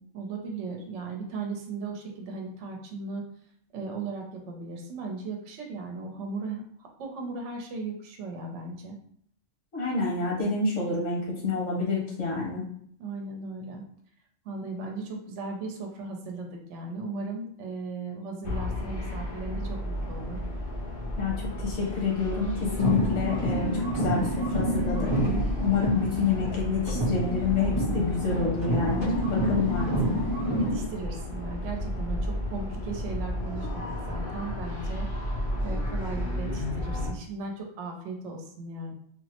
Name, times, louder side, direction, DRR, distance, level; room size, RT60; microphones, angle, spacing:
voice 1, 0.1-3.2 3.7-9.0 13.0-13.8 14.4-20.4 30.6-35.1 35.6-38.9, right 3 dB, 75° right, 1 dB, 0.9 m, -37 dB
voice 2, 9.7-12.6 21.2-25.1 25.6-29.9, left 5 dB, 75° left, -3 dB, 1.3 m, -28 dB
sound 1, 18.4-37.1, left 1 dB, 55° left, 0.7 m, -33 dB
sound 2, 22.7-26.6 26.9-30.8, right 1 dB, 25° right, 0.7 m, -29 dB
3.6 x 2.0 x 2.8 m, 0.64 s
omnidirectional pair, 1.3 m